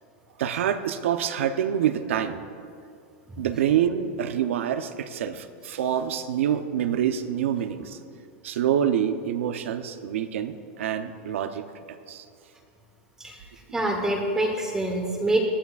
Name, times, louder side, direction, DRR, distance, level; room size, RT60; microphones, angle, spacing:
voice 1, 0.4-2.4 3.4-8.0 8.4-12.2, right 9 dB, 85° right, 9 dB, 0.7 m, -26 dB
voice 2, 13.7-15.4, right 1 dB, 10° right, 1 dB, 1.1 m, -25 dB
18.5 x 11.5 x 2.4 m, 2.4 s
supercardioid pair, 150°, 7 cm